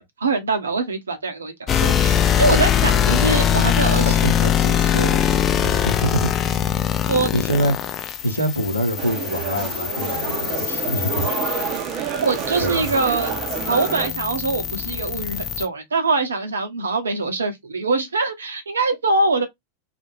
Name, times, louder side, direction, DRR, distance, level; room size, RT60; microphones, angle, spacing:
voice 1, 0.2-4.2 7.1-7.3 12.2-13.3 13.7-19.5, right 3 dB, 70° right, 0.7 m, -23 dB
sound 1, 1.7-15.7, left 9 dB, 25° left, 0.4 m, -22 dB
voice 2, 3.9-5.3 5.6-6.3 7.0-7.9 8.2-11.3 12.6-12.9, equal, 85° left, 0.8 m, -25 dB
sound 2, 9.0-14.1, right 8 dB, 35° right, 0.5 m, -28 dB
2.4 x 2.1 x 3.1 m
figure-of-eight pair, 90°, 0 cm